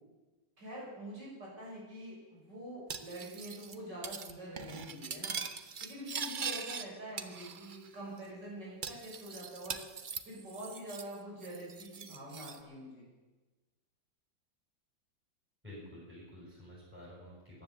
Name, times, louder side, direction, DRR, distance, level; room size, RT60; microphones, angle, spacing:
voice 1, 0.6-5.4 5.8-9.8 10.3-13.1, right 1 dB, 65° right, -5 dB, 7.0 m, -45 dB
Cutlery silverware, 2.9-3.8 4.0-4.3 4.6-6.9 7.2-7.9 8.2-8.3 8.8-11.1 11.4-12.6, right 6 dB, 85° right, 0.4 m, -41 dB
voice 2, 15.6-17.6, left 1 dB, 5° right, -7 dB, 6.2 m, -50 dB
14.5 x 10.5 x 7.2 m, 1.2 s
omnidirectional pair, 2.0 m